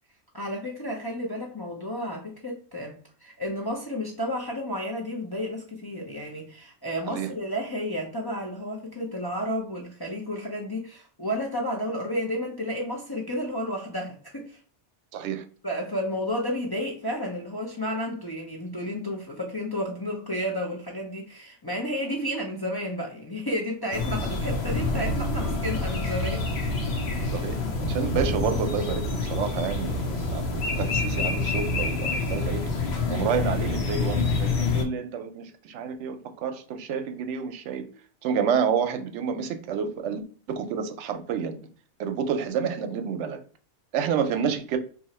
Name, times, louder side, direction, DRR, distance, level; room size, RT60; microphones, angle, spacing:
voice 1, 0.3-14.6 15.6-26.5, equal, 30° left, 0.4 m, -32 dB
voice 2, 15.1-15.4 27.3-32.6 33.1-37.9 38.2-40.2 40.5-41.6 42.0-43.4 43.9-44.8, right 7 dB, 85° right, 0.9 m, -29 dB
sound 1, 23.9-34.8, left 3 dB, 70° left, 0.9 m, -27 dB
2.8 x 2.4 x 4.1 m
omnidirectional pair, 1.2 m